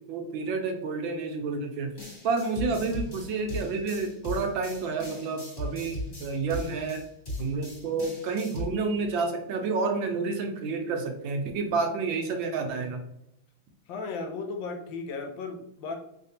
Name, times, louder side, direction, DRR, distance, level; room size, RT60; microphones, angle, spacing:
voice 1, 0.1-1.9 2.2-7.0 7.4-13.0, right 4 dB, 75° right, 4 dB, 1.3 m, -29 dB
sound 1, 2.0-8.7, left 1 dB, 25° left, 1.3 m, -38 dB
voice 2, 13.9-16.0, left 4 dB, 70° left, 4 dB, 1.3 m, -35 dB
4.3 x 3.3 x 2.7 m, 0.81 s
omnidirectional pair, 2.3 m